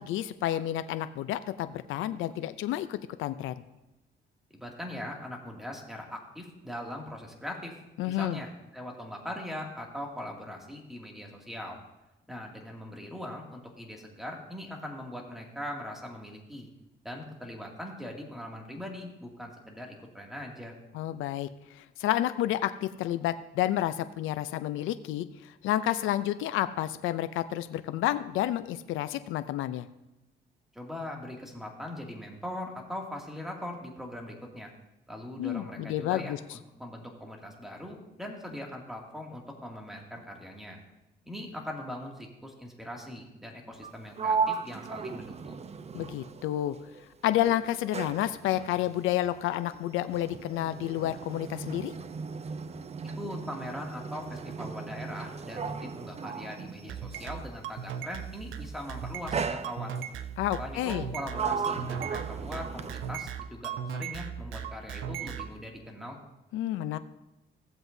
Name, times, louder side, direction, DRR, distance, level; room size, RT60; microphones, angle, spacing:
voice 1, 0.0-3.5 8.0-8.4 20.9-29.9 35.4-36.4 45.9-46.8 47.2-51.9 60.4-61.1 66.5-67.0, left 13 dB, 85° left, 12 dB, 0.5 m, -30 dB
voice 2, 4.5-7.8 8.0-11.8 12.3-16.7 17.0-20.8 30.7-34.7 35.1-40.8 41.2-45.6 53.2-60.0 60.6-66.2, left 1 dB, ahead, 0 dB, 2.3 m, -41 dB
Sliding door, 43.7-47.0 47.3-57.5 58.4-58.7 59.3-60.2 60.8-63.4, right 5 dB, 35° right, 0.6 m, -36 dB
sound 1, 56.9-65.5, right 8 dB, 80° right, 0.7 m, -37 dB
15.5 x 7.8 x 2.7 m, 0.95 s
cardioid pair, 90°, 20 cm